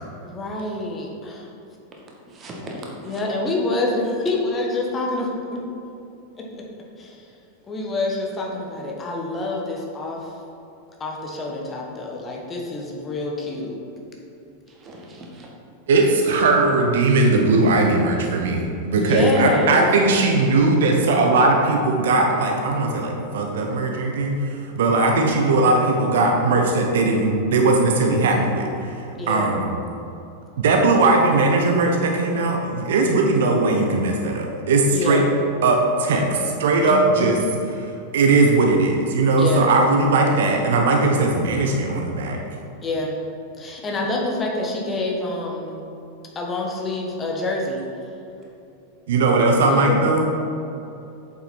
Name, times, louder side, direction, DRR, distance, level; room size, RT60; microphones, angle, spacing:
voice 1, 0.2-1.5 3.0-5.6 6.3-6.5 7.0-7.3 7.7-10.3 11.0-13.8 19.0-19.9 29.1-29.5 34.9-35.3 36.8-37.3 39.4-39.7 42.8-43.1 43.6-45.8 46.3-47.9 49.9-50.0, left 2 dB, 20° left, -1 dB, 1.4 m, -27 dB
voice 2, 2.3-3.2 14.7-15.5, right 1 dB, 25° right, -2 dB, 1.9 m, -38 dB
voice 3, 15.9-29.8 30.6-35.2 35.6-37.4 37.7-37.9 38.1-42.4 49.1-50.2, right 3 dB, 60° right, 2 dB, 0.9 m, -19 dB
8.2 x 7.1 x 4.4 m, 2.9 s
figure-of-eight pair, 90°, 0 cm